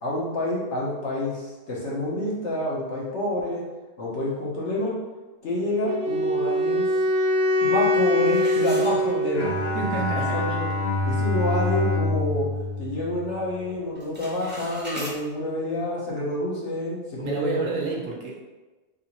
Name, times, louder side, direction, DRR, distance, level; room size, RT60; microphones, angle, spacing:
voice 1, 0.0-3.6 4.0-4.9 5.4-6.9 7.6-9.5 10.1-10.6 11.0-12.5 12.8-17.6, left 1 dB, 50° left, -5 dB, 1.3 m, -28 dB
Wind instrument woodwind instrument, 5.8-10.0, left 1 dB, 80° right, 1.2 m, -23 dB
sound 1, 8.3-9.6 10.0-10.1 10.7-10.8 11.2-11.5 11.9-13.0 13.3-13.6 13.9-15.2, right 1 dB, 10° right, 0.6 m, -39 dB
Bowed string instrument, 9.3-13.8, left 2 dB, 70° left, 1.2 m, -27 dB
voice 2, 9.7-10.6 17.2-18.5, right 4 dB, 60° right, -1 dB, 1.2 m, -29 dB
4.0 x 3.9 x 3.0 m, 1.2 s
omnidirectional pair, 1.6 m